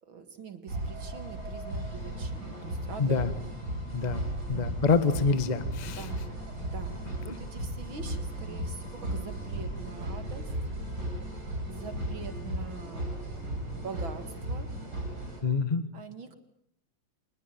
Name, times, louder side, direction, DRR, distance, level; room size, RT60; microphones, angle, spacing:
voice 1, 0.0-3.6 4.0-4.2 5.8-6.2 6.6-10.5 11.7-13.1 13.8-14.8 15.9-16.4, right 5 dB, 45° right, 10 dB, 2.3 m, -44 dB
sound 1, 0.7-15.4, right 1 dB, 30° right, 7.7 m, -36 dB
voice 2, 3.0-3.3 3.9-6.0 15.4-15.9, left 4 dB, 60° left, 12 dB, 0.4 m, -26 dB
26.0 x 21.5 x 9.2 m, 0.73 s
omnidirectional pair, 3.6 m